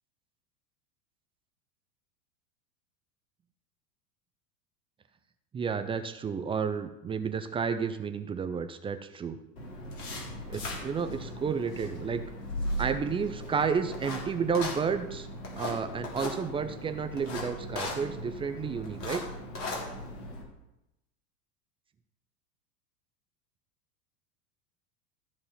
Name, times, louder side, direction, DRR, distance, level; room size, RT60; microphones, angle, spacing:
voice 1, 5.5-9.4 10.5-12.2 12.8-15.3 15.6-19.2, right 6 dB, 10° right, 8 dB, 0.4 m, -31 dB
sound 1, 9.6-20.4, left 1 dB, 80° left, 3.3 m, -38 dB
13.5 x 4.8 x 5.7 m, 0.93 s
hypercardioid pair, 90°, 47 cm